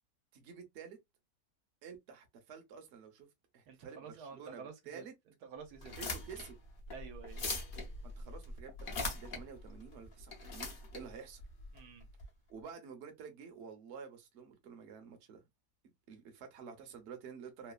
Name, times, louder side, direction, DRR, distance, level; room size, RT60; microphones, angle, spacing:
voice 1, 0.3-1.0 1.8-3.3 3.5-5.1 6.0-6.6 8.0-11.4 12.5-15.4 16.1-17.7, right 6 dB, 55° right, 0.9 m, -50 dB
voice 2, 3.7-5.0 5.4-5.9 6.9-7.5 11.7-12.1, right 6 dB, 85° right, 1.3 m, -50 dB
sound 1, 5.7-12.2, left 3 dB, 50° left, 0.7 m, -42 dB
3.0 x 2.2 x 2.3 m
omnidirectional pair, 1.6 m